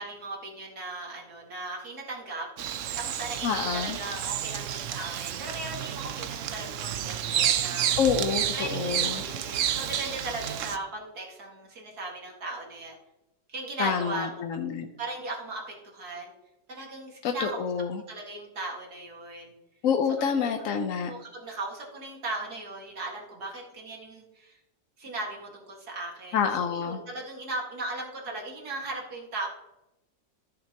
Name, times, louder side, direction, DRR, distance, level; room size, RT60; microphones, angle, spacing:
voice 1, 0.0-7.9 8.4-13.0 13.5-14.3 15.0-16.3 16.7-17.7 18.1-19.5 20.3-20.5 21.1-24.6 25.0-29.5, right 2 dB, 55° right, -1 dB, 2.3 m, -37 dB
Bird vocalization bird call bird song, 2.6-10.8, right 10 dB, 85° right, 0.6 m, -30 dB
voice 2, 3.4-4.0 8.0-9.2 13.8-14.9 17.2-18.0 19.8-21.1 26.3-27.0, left 7 dB, 65° left, 5 dB, 0.9 m, -27 dB
13.5 x 6.7 x 2.9 m, 0.92 s
omnidirectional pair, 2.0 m